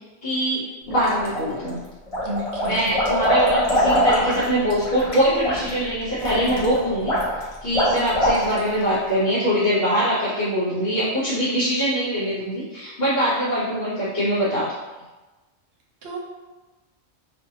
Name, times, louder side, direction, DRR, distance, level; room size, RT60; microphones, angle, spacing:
voice 1, 0.2-1.8 2.7-7.1 7.6-14.7, equal, 55° left, -11 dB, 1.1 m, -23 dB
sound 1, 0.9-1.7 2.1-8.8, equal, 35° left, 0.6 m, -23 dB
voice 2, 2.2-3.0 16.0-16.2, right 1 dB, 60° right, -2 dB, 0.7 m, -31 dB
2.6 x 2.2 x 2.7 m, 1.2 s
omnidirectional pair, 1.3 m